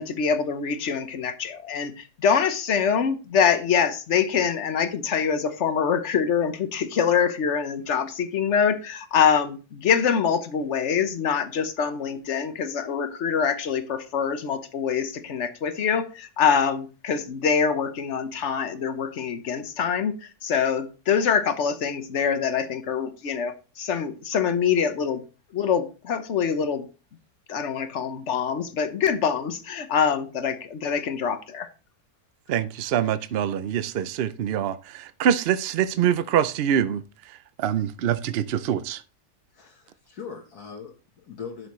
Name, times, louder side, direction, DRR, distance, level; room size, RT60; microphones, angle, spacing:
voice 1, 0.0-25.2 25.5-26.9 27.5-31.7, left 7 dB, 55° left, 1.2 m, -25 dB
voice 2, 32.5-37.0 37.6-39.0, right 9 dB, 70° right, 0.5 m, -24 dB
voice 3, 39.5-41.7, left 6 dB, 75° left, 1.7 m, -40 dB
11.0 x 7.0 x 3.1 m
omnidirectional pair, 1.6 m